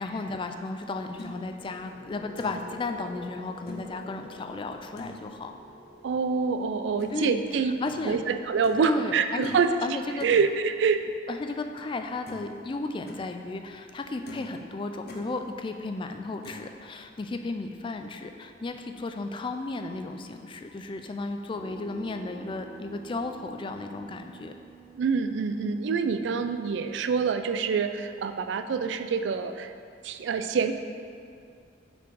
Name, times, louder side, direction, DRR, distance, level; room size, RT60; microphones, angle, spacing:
voice 1, 0.0-5.5 7.1-8.2 8.8-10.3 11.3-24.5, left 3 dB, 25° left, 6 dB, 0.3 m, -34 dB
sound 1, 1.1-9.1, left 1 dB, 10° right, 1.1 m, -49 dB
sound 2, 1.2-1.3 1.9-2.0 2.4-2.7 3.7-3.9 5.0-5.2 7.0-7.1 7.8-8.1 8.6-8.9 9.4-9.7 10.2-10.4 11.8-11.9 12.2-12.5 12.9-13.2 13.8-13.9 14.3-14.5 14.8-15.3 16.4-16.7, left 1 dB, 55° left, 0.7 m, -43 dB
voice 2, 6.0-7.7 8.0-11.0 25.0-29.7 30.0-30.7, right 5 dB, 70° right, 9 dB, 0.3 m, -26 dB
sound 3, 21.5-27.3, right 6 dB, 40° right, 0.8 m, -49 dB
5.5 x 4.3 x 4.6 m, 2.4 s
head